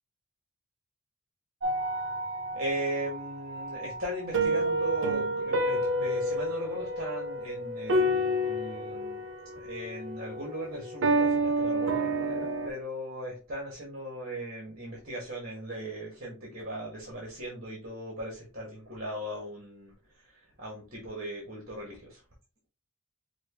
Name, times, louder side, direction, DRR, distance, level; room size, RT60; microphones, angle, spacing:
sound 1, 1.6-12.7, right 1 dB, 65° right, 0.9 m, -30 dB
voice 1, 2.5-9.2 9.6-22.2, right 1 dB, 45° right, -3 dB, 1.9 m, -38 dB
6.1 x 2.5 x 3.1 m, 0.31 s
head